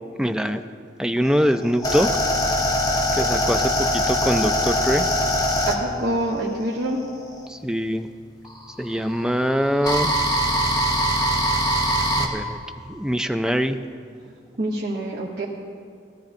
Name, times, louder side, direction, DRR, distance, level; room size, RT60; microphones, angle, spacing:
voice 1, 0.2-0.6 1.0-2.1 3.2-5.1 7.5-8.1 8.8-10.1 12.2-12.6 12.8-13.8, equal, 5° right, 8 dB, 0.3 m, -23 dB
sound 1, 1.3-7.5 8.5-12.3, equal, 20° left, 1.1 m, -22 dB
voice 2, 5.6-7.0 14.6-15.4, right 1 dB, 65° right, -4 dB, 1.0 m, -26 dB
16.5 x 13.0 x 2.6 m, 2.2 s
head